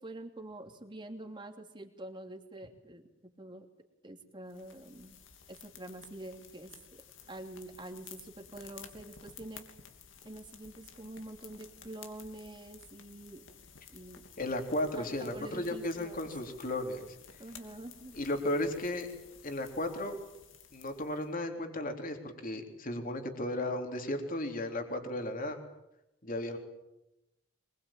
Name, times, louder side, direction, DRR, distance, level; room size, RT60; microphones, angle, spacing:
voice 1, 0.0-3.7 4.0-5.2 5.5-7.0 7.3-9.6 10.2-13.5 13.9-14.2 14.9-16.3 17.4-18.1, right 1 dB, 25° right, 4 dB, 2.9 m, -46 dB
sound 1, 4.5-21.3, left 7 dB, 80° left, 3.1 m, -54 dB
voice 2, 14.4-17.1 18.1-19.1 19.4-20.2 20.7-25.6 26.2-26.6, left 1 dB, 45° left, 4 dB, 3.8 m, -35 dB
25.0 x 22.0 x 9.0 m, 0.90 s
head